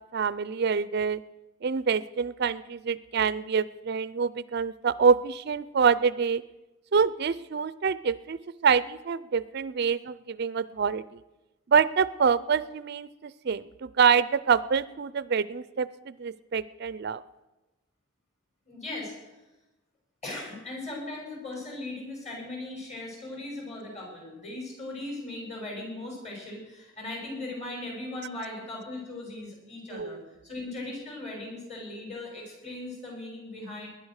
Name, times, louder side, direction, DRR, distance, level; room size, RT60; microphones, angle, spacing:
voice 1, 0.1-1.2 1.6-6.4 6.9-11.2 11.7-17.2 29.9-30.2, right 6 dB, 55° right, 18 dB, 0.4 m, -26 dB
voice 2, 18.7-19.3 20.2-33.9, left 2 dB, 35° left, -1 dB, 6.9 m, -38 dB
20.0 x 10.5 x 6.5 m, 1.0 s
head